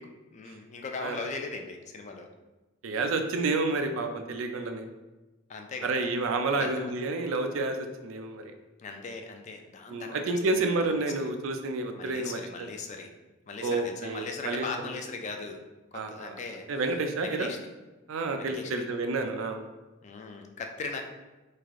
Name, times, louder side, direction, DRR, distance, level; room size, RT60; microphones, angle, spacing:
voice 1, 0.0-2.3 5.5-6.1 6.6-6.9 8.8-10.4 12.0-13.1 13.5-15.6 15.9-16.6 17.2-17.6 18.4-18.8 20.0-21.1, left 4 dB, 35° left, 4 dB, 0.3 m, -39 dB
voice 2, 2.8-4.9 5.8-7.8 8.0-8.4 9.9-12.7 13.6-14.9 15.9-16.4 16.7-17.5 18.1-19.6, right 3 dB, 80° right, 6 dB, 0.4 m, -30 dB
3.2 x 2.4 x 3.5 m, 1.1 s
head